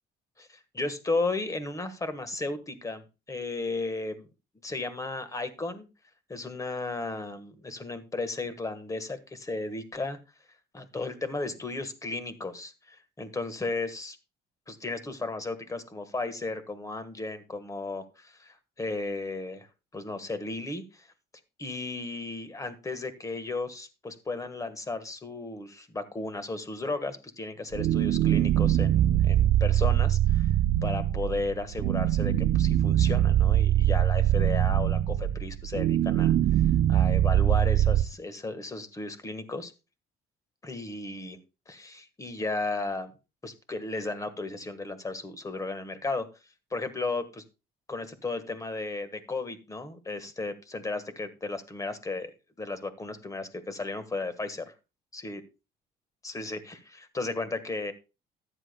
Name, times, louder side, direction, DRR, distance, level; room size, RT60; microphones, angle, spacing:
voice 1, 0.4-3.0 3.3-4.3 4.6-5.9 6.3-10.2 10.7-14.2 14.7-19.7 19.9-21.1 21.6-30.5 30.8-36.6 36.9-39.7 40.6-41.4 41.7-43.1 43.4-46.3 46.7-47.4 47.9-52.3 52.6-54.7 55.1-55.4 56.2-57.9, left 3 dB, 20° left, 11 dB, 1.4 m, -34 dB
sound 1, 27.7-38.0, right 12 dB, 80° right, 0.6 m, -23 dB
14.0 x 9.9 x 2.2 m, 0.29 s
cardioid pair, 110°, 17 cm